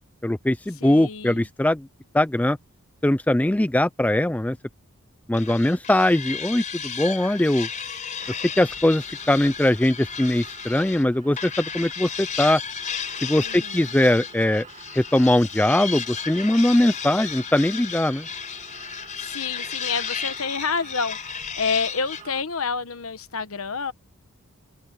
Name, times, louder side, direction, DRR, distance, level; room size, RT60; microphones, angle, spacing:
voice 1, 0.2-1.9 2.1-2.6 3.0-4.6 5.3-7.7 8.6-12.6 13.2-14.7 14.9-18.3, left 1 dB, 5° left, 0.4 m, -21 dB
voice 2, 0.8-1.5 13.4-13.8 19.2-23.9, left 5 dB, 70° left, 1.2 m, -29 dB
Sink knife scrape, 5.3-11.0 11.4-22.2, left 6 dB, 35° left, 4.0 m, -34 dB
sound 1, 8.2-22.4, right 4 dB, 35° right, 2.8 m, -47 dB
head